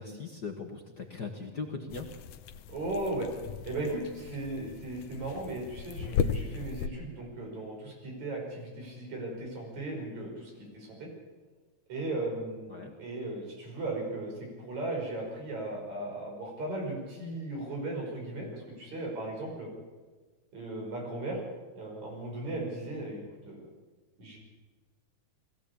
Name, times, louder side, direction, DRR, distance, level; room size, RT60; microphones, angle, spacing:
voice 1, 0.0-2.1 12.7-12.9, left 4 dB, 45° left, 3 dB, 1.7 m, -39 dB
sound 1, 1.9-6.9, left 7 dB, 85° left, 2.4 m, -36 dB
voice 2, 2.7-3.3 3.7-11.1 11.9-14.3 14.6-19.7 20.5-21.4 21.8-23.6 24.2-24.4, right 2 dB, 70° right, 0 dB, 6.8 m, -37 dB
21.0 x 16.0 x 8.6 m, 1.3 s
omnidirectional pair, 3.3 m